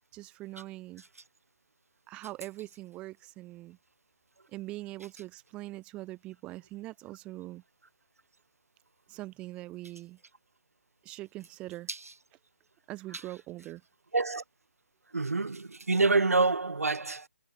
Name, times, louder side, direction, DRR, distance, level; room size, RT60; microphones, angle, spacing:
voice 1, 0.1-1.0 2.1-3.8 4.5-7.6 9.1-10.2 11.0-11.9 12.9-13.8, right 18 dB, 15° right, 1.3 m, -42 dB
voice 2, 14.1-14.4 15.1-17.3, right 3 dB, 85° right, 0.9 m, -27 dB
figure-of-eight pair, 155°, 8 cm